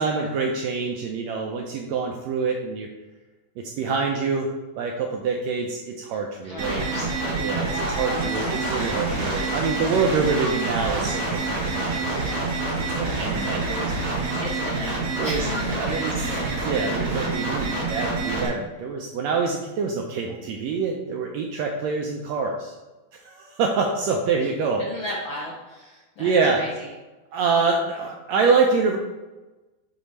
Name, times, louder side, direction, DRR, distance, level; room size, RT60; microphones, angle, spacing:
voice 1, 0.0-2.9 3.6-6.8 7.3-12.4 12.7-14.2 15.2-15.4 15.8-22.7 23.1-24.8 26.2-26.6 27.3-29.0, right 4 dB, 85° right, 1 dB, 1.5 m, -26 dB
voice 2, 6.4-7.3 7.9-8.0 9.6-9.7 14.4-16.5 17.6-17.8 24.8-26.9, left 1 dB, 75° left, -5 dB, 1.1 m, -36 dB
sound 1, 6.6-18.5, right 3 dB, 60° right, 2.9 m, -27 dB
Applause / Crowd, 7.3-15.5, right 1 dB, 40° right, 2.3 m, -37 dB
6.8 x 3.0 x 5.4 m, 1.1 s
omnidirectional pair, 3.6 m